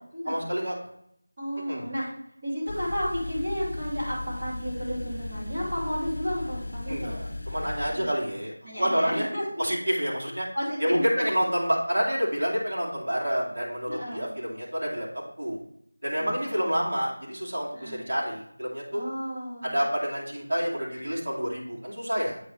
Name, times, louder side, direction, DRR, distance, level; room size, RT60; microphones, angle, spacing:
voice 1, 0.2-0.7 1.6-1.9 6.9-9.3 9.6-10.5 10.8-15.6 16.0-19.0 19.6-22.4, equal, 45° right, -5 dB, 2.6 m, -28 dB
voice 2, 1.4-2.1 2.4-7.1 7.9-8.1 8.6-9.4 10.1-11.2 13.9-14.3 16.2-16.7 17.7-18.0 18.9-19.8, equal, 25° right, -9 dB, 2.5 m, -32 dB
sound 1, 2.7-7.9, left 2 dB, 30° left, 1.0 m, -36 dB
8.2 x 5.4 x 3.2 m, 0.72 s
figure-of-eight pair, 180°, 0 cm